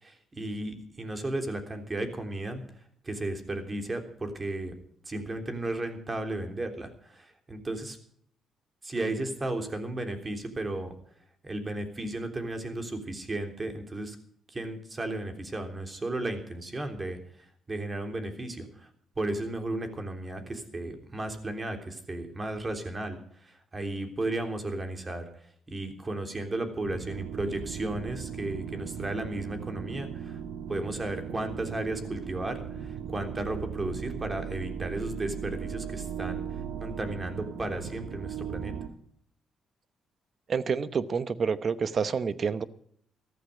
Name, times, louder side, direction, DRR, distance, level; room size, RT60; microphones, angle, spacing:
voice 1, 0.0-2.6 3.0-4.7 5.1-8.0 8.8-10.9 11.4-14.2 14.5-17.2 17.7-18.9 19.2-25.2 25.7-30.4 30.7-36.4 36.8-38.7, right 2 dB, 25° right, 6 dB, 3.2 m, -34 dB
sound 1, 26.8-38.9, right 8 dB, 85° right, 1.5 m, -38 dB
voice 2, 40.5-42.6, right 6 dB, 45° right, 15 dB, 0.9 m, -28 dB
14.5 x 13.5 x 5.1 m, 0.64 s
cardioid pair, 90°, 0 cm